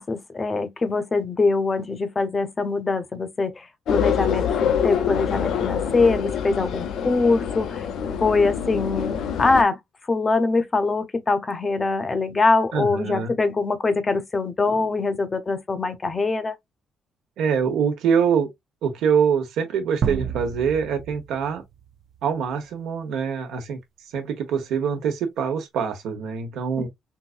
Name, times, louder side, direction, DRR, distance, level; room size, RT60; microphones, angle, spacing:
voice 1, 0.0-7.9 8.2-9.8 10.1-16.5 26.8-26.9, left 3 dB, 30° left, 0.6 m, -23 dB
sound 1, 3.9-9.6, left 8 dB, 75° left, 0.5 m, -25 dB
voice 2, 12.7-13.3 17.4-18.5 18.8-21.6 22.2-23.8 24.1-26.9, right 7 dB, 80° right, 1.1 m, -24 dB
sound 2, 20.0-22.4, right 7 dB, 60° right, 0.4 m, -30 dB
3.9 x 2.5 x 2.4 m
cardioid pair, 110°, 0 cm